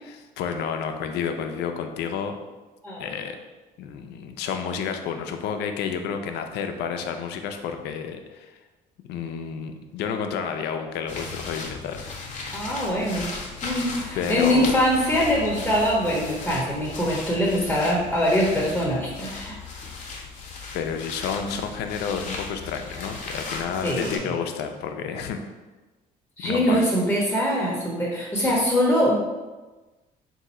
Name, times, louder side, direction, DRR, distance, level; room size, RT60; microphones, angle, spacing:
voice 1, 0.0-2.4 3.0-3.4 3.8-8.5 9.1-12.0 14.2-14.8 19.9-20.1 20.7-25.4 26.4-26.8 28.4-28.5, left 7 dB, 80° left, 6 dB, 0.5 m, -30 dB
sound 1, 11.1-24.2, left 4 dB, 45° left, 0.9 m, -36 dB
voice 2, 12.5-13.3 13.6-19.6 23.8-24.3 26.4-29.3, equal, 5° left, -4 dB, 0.8 m, -23 dB
3.7 x 2.7 x 4.2 m, 1.2 s
cardioid pair, 110°, 17 cm